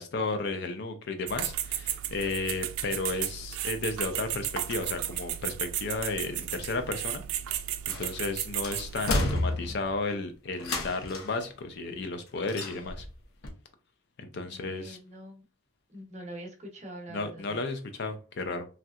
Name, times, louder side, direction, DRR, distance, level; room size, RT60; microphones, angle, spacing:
voice 1, 0.0-7.2 7.9-13.1 14.2-15.0 17.1-18.7, left 3 dB, 50° left, 0.5 m, -33 dB
sound 1, 1.3-9.1, right 11 dB, 80° right, 0.3 m, -34 dB
sound 2, 7.9-8.3 8.6-10.0 10.6-11.4 12.5-13.1 13.4-13.5, left 2 dB, 85° left, 0.7 m, -31 dB
voice 2, 14.4-15.4 15.9-17.6, right 1 dB, 30° right, 0.7 m, -44 dB
3.2 x 2.8 x 2.3 m
head